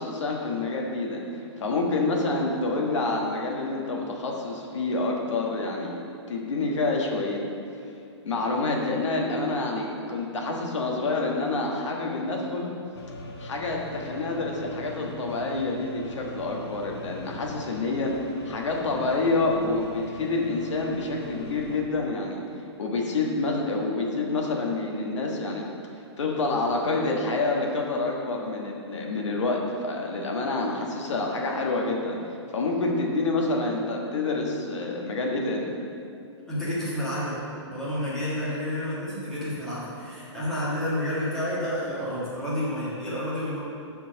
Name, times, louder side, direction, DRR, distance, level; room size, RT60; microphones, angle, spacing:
voice 1, 0.0-6.0 6.3-7.4 8.2-12.7 13.4-18.1 18.4-22.4 22.8-25.7 26.2-32.2 32.5-35.7, left 3 dB, 75° left, 0 dB, 1.4 m, -27 dB
sound 1, 12.9-21.8, equal, 55° left, 1.0 m, -42 dB
voice 2, 36.5-43.6, left 1 dB, 5° left, -11 dB, 1.7 m, -30 dB
7.3 x 4.5 x 6.2 m, 2.5 s
hypercardioid pair, 170°, 15 cm